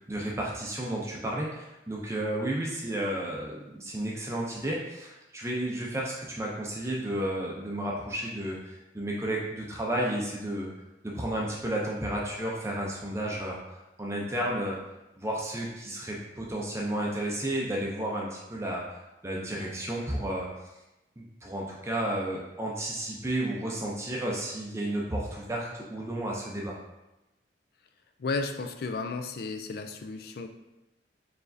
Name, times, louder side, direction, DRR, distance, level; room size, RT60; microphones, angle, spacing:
voice 1, 0.0-10.7 11.0-14.8 15.2-19.0 19.2-20.5 21.2-26.8, right 1 dB, 15° right, -3 dB, 0.5 m, -32 dB
voice 2, 28.2-30.5, left 3 dB, 55° left, 7 dB, 0.3 m, -33 dB
4.6 x 3.2 x 2.6 m, 0.96 s
head